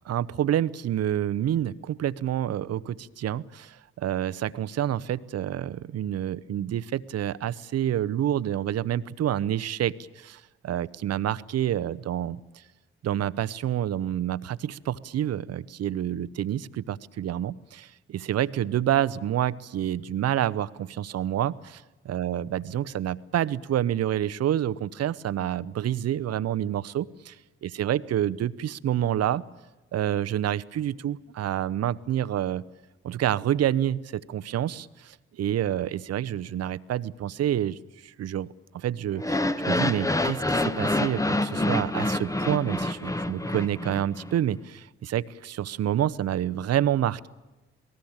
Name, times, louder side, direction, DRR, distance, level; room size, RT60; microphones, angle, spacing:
voice 1, 0.0-12.4 13.0-21.8 22.1-27.3 27.8-29.4 29.9-32.6 33.0-37.8 38.0-38.5 38.7-47.3, right 11 dB, 55° right, 17 dB, 0.9 m, -28 dB
sound 1, 39.2-44.3, left 2 dB, 10° left, 1.1 m, -27 dB
28.5 x 19.5 x 8.8 m, 1.1 s
hypercardioid pair, 40°, 31 cm